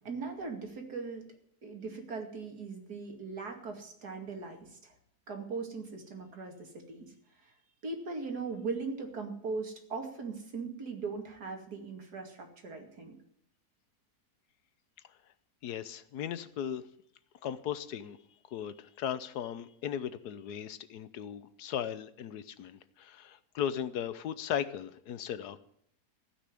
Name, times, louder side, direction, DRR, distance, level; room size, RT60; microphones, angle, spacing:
voice 1, 0.0-1.2 1.6-4.9 5.3-7.1 7.4-7.5 7.8-13.1, right 4 dB, 75° right, 3 dB, 2.9 m, -39 dB
voice 2, 15.6-16.8 17.4-18.2 18.5-25.6, left 9 dB, 75° left, 14 dB, 1.3 m, -37 dB
15.5 x 5.9 x 9.9 m, 0.69 s
omnidirectional pair, 1.7 m